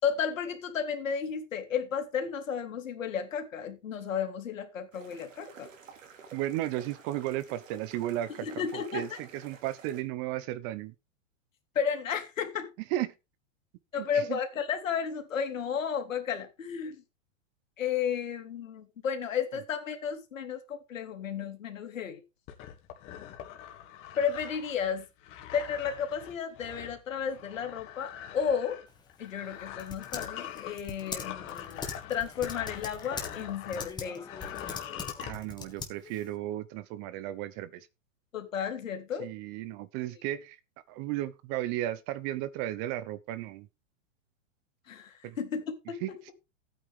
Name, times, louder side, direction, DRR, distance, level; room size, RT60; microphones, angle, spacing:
voice 1, 0.0-5.7 8.4-9.2 11.7-12.7 13.9-17.0 17.8-22.2 24.2-25.1 25.5-28.8 29.2-34.3 38.3-39.3 44.9-46.2, left 7 dB, 85° left, 3.1 m, -33 dB
sound 1, 4.9-10.0, right 6 dB, 80° right, 3.5 m, -51 dB
voice 2, 6.3-10.9 12.9-13.1 14.0-14.4 35.2-37.9 39.2-40.6 40.9-43.7 45.2-45.4 46.0-46.3, right 14 dB, 30° right, 0.7 m, -34 dB
sound 2, 22.5-33.9 34.2-35.3, left 10 dB, 35° left, 1.9 m, -43 dB
Typing, 28.9-36.3, left 5 dB, 10° left, 1.7 m, -42 dB
13.5 x 9.0 x 3.6 m
hypercardioid pair, 140°, 38 cm